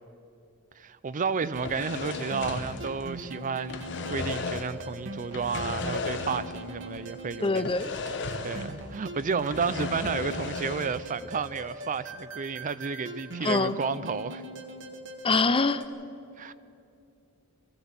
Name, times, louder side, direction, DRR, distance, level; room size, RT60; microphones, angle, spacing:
voice 1, 0.8-7.7 8.4-14.4 16.4-16.5, right 5 dB, 35° right, 0.5 m, -32 dB
sound 1, 1.4-15.9, right 1 dB, 55° right, 1.5 m, -42 dB
sound 2, 1.5-3.3 3.6-4.8 5.3-6.7 7.0-7.1 7.6-8.9 9.2-11.0, left 3 dB, 55° left, 1.1 m, -35 dB
voice 2, 7.4-7.9 13.4-13.8 15.2-15.8, left 3 dB, 25° left, 0.6 m, -24 dB
23.5 x 15.5 x 7.3 m
head